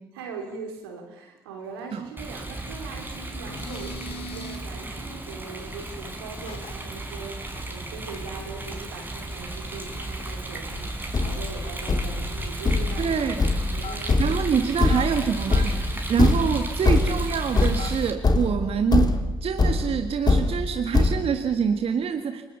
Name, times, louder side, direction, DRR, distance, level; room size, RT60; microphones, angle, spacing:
voice 1, 0.1-13.4 13.7-14.9, right 4 dB, 85° right, 2 dB, 4.3 m, -41 dB
Rain, 2.2-18.1, right 2 dB, 15° right, 4.8 m, -35 dB
sound 1, 3.3-4.6 6.5-6.7 7.1-7.2 7.5-7.7 8.1-8.2 8.6-8.7 9.4-10.7 11.0-11.1 11.3-11.4 11.6-11.7 12.3-12.8 13.7-14.3 14.9-15.0 17.5-18.1, left 3 dB, 50° left, 3.0 m, -40 dB
Thump thud, 10.7-10.8 11.1-21.2, left 3 dB, 35° left, 2.9 m, -24 dB
voice 2, 13.0-13.4 14.2-19.1 19.4-22.4, right 7 dB, 50° right, 6 dB, 1.8 m, -25 dB
30.0 x 19.5 x 7.1 m, 0.97 s
hypercardioid pair, 50°, 12 cm